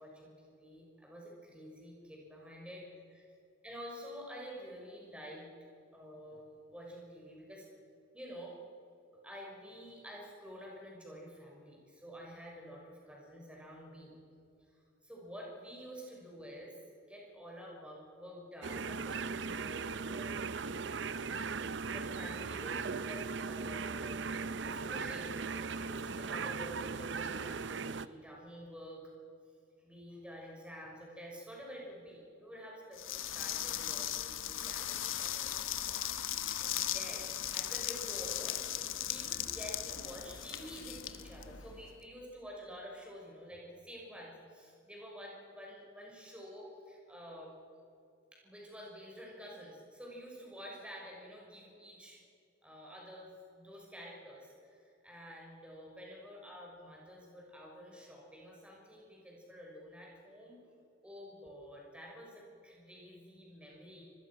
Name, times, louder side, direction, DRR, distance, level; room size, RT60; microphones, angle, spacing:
voice 1, 0.0-3.2 3.6-5.5 5.9-6.4 6.7-7.7 8.1-8.6 9.1-14.1 14.7-16.8 17.1-20.4 20.9-24.3 24.7-29.0 29.8-47.5 48.3-52.2 52.6-60.6 61.0-64.0, equal, 5° right, -2 dB, 6.3 m, -49 dB
sound 1, 18.6-28.1, right 5 dB, 60° right, 0.7 m, -38 dB
sound 2, 33.0-41.9, left 11 dB, 90° left, 1.3 m, -38 dB
26.0 x 21.0 x 6.2 m, 2.6 s
head